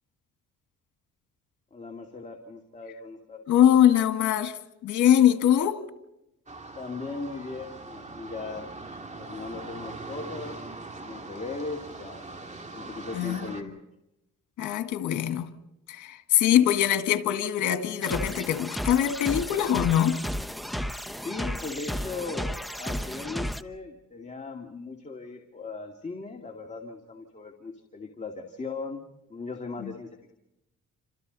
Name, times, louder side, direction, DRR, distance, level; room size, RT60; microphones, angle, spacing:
voice 1, 1.7-3.4 6.7-8.7 9.2-10.6 11.0-12.3 12.7-13.8 21.2-30.3, left 3 dB, 25° left, 2.5 m, -38 dB
voice 2, 3.5-4.6 4.8-5.8 13.1-13.5 14.6-15.5 15.9-20.2 29.8-29.9, left 10 dB, 80° left, 1.8 m, -22 dB
sound 1, 6.5-13.6, right 3 dB, 25° right, 2.8 m, -41 dB
sound 2, 18.0-23.6, equal, ahead, 1.0 m, -33 dB
29.0 x 26.5 x 4.1 m
cardioid pair, 90°, 30 cm